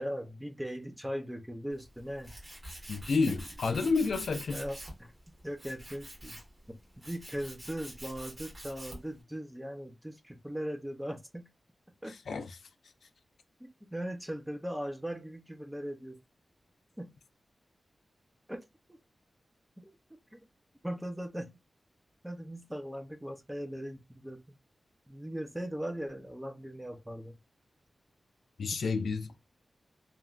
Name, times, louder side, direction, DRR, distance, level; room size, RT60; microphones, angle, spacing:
voice 1, 0.0-2.3 3.3-3.4 4.5-6.4 6.7-11.5 12.0-12.2 13.6-16.2 17.0-17.1 18.5-19.0 19.8-20.4 20.8-21.5 22.2-24.6 25.1-27.4, equal, 5° right, 0.5 m, -39 dB
Tools, 1.7-9.2, right 1 dB, 20° right, 1.4 m, -47 dB
voice 2, 2.9-4.6 12.1-12.6 28.6-29.3, left 4 dB, 85° left, 0.4 m, -30 dB
3.0 x 2.3 x 2.4 m
wide cardioid pair, 155°, 0 cm